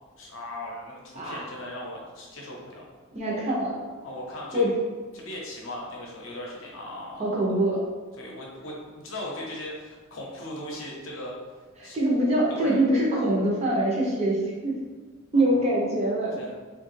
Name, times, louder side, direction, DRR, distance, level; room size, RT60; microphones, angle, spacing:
voice 1, 0.2-2.8 4.0-4.6 5.1-7.2 8.2-11.3 11.8-12.0 12.5-12.7 15.3-15.7 16.4-16.5, left 1 dB, 65° left, -2 dB, 0.7 m, -38 dB
voice 2, 3.1-3.8 4.5-4.7 7.2-7.8 11.8-14.8 15.3-16.4, right 1 dB, 30° right, -3 dB, 0.6 m, -24 dB
2.9 x 2.3 x 3.0 m, 1.4 s
head